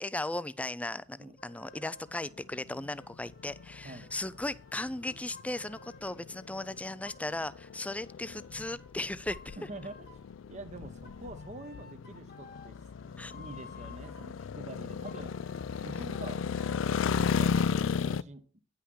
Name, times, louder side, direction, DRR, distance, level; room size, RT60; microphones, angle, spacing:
voice 1, 0.0-9.6 13.2-13.3 15.9-16.1, left 2 dB, 5° left, 0.4 m, -37 dB
sound 1, 1.4-2.4 3.0-6.4 7.0-8.9 9.3-10.4 11.0-14.4 15.0-17.2, left 3 dB, 55° left, 1.3 m, -55 dB
sound 2, 2.1-18.2, left 6 dB, 80° left, 0.4 m, -35 dB
voice 2, 9.6-10.0 10.5-12.8 13.3-15.3 15.8-16.4 17.2-18.4, right 2 dB, 40° right, 1.0 m, -45 dB
9.8 x 5.7 x 6.2 m
head